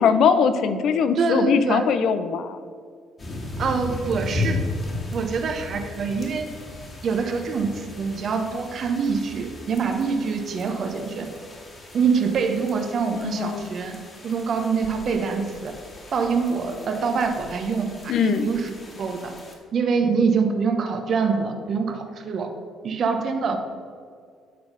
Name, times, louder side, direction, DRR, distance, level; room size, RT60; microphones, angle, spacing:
voice 1, 0.0-2.6 13.1-13.6 18.1-18.5, left 6 dB, 70° left, 10 dB, 0.6 m, -21 dB
voice 2, 1.2-1.8 3.6-4.6 5.1-6.5 7.0-11.3 11.9-14.0 14.2-15.7 16.1-19.3 19.7-22.5 22.8-23.6, right 5 dB, 55° right, 5 dB, 0.9 m, -25 dB
sound 1, 3.2-19.5, left 2 dB, 40° left, 2.0 m, -36 dB
8.6 x 3.9 x 5.9 m, 2.1 s
supercardioid pair, 65°, 0 cm